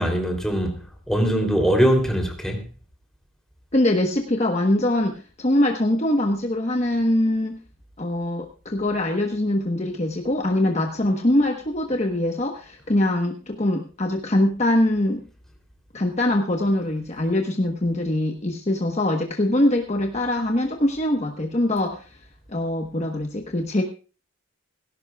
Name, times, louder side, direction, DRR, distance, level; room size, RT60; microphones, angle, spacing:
voice 1, 0.0-2.6, equal, ahead, 3.0 m, -22 dB
voice 2, 3.7-7.6 8.0-15.2 15.9-22.1 22.5-23.8, left 1 dB, 30° left, 1.1 m, -23 dB
18.5 x 16.5 x 2.3 m
head